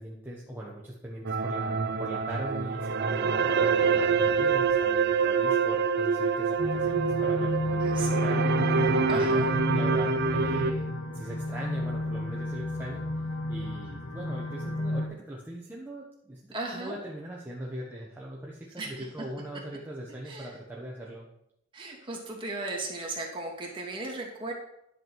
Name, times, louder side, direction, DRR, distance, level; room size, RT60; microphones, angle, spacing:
voice 1, 0.0-13.0 13.5-21.3, right 1 dB, 10° right, -4 dB, 1.3 m, -40 dB
sound 1, 1.2-10.7, right 5 dB, 55° right, 0.5 m, -26 dB
sound 2, 6.6-15.0, left 1 dB, 90° left, 1.5 m, -31 dB
voice 2, 7.8-8.4 9.1-9.5 16.5-17.0 18.8-19.1 20.2-20.6 21.7-24.5, right 2 dB, 25° right, -2 dB, 2.6 m, -36 dB
11.0 x 7.5 x 4.7 m, 0.80 s
head